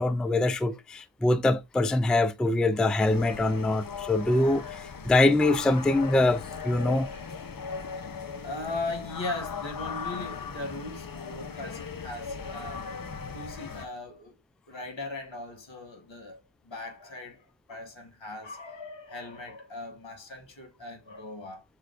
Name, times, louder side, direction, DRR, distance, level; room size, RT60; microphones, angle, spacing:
voice 1, 0.0-7.1, left 2 dB, ahead, 0.3 m, -24 dB
sound 1, 3.0-13.9, left 5 dB, 50° left, 0.7 m, -38 dB
voice 2, 8.4-12.9 13.3-14.3 14.7-21.6, left 2 dB, 70° left, 1.5 m, -39 dB
6.2 x 2.2 x 2.4 m
cardioid pair, 45°, 46 cm